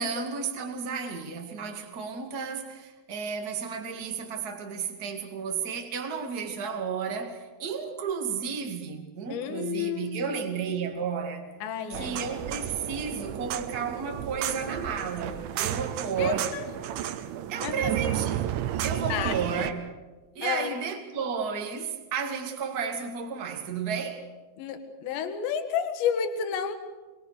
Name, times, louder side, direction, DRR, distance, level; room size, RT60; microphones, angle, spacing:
voice 1, 0.0-11.5 11.9-16.5 17.5-19.9 20.3-24.3, right 6 dB, 35° right, 1.5 m, -32 dB
voice 2, 9.3-10.4 10.7-10.8 11.6-12.2 16.2-16.7 17.6-17.9 19.1-19.4 20.4-20.7 24.6-26.8, left 8 dB, 70° left, 3.9 m, -31 dB
sound 1, 11.9-19.7, right 11 dB, 80° right, 3.4 m, -32 dB
26.0 x 22.0 x 6.7 m
omnidirectional pair, 5.4 m